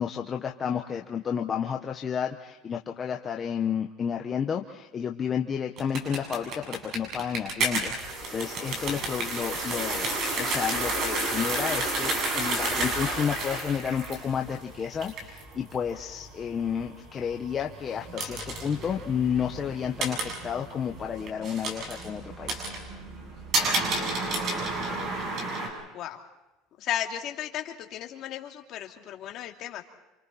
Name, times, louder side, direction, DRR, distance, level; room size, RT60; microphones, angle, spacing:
voice 1, 0.0-22.7, left 7 dB, 25° left, 2 dB, 1.1 m, -31 dB
sound 1, 5.8-25.7, right 2 dB, 45° right, 7.5 m, -31 dB
voice 2, 26.8-29.8, left 11 dB, 45° left, 2 dB, 2.7 m, -34 dB
29.0 x 28.0 x 4.3 m, 1.0 s
cardioid pair, 145°, 0 cm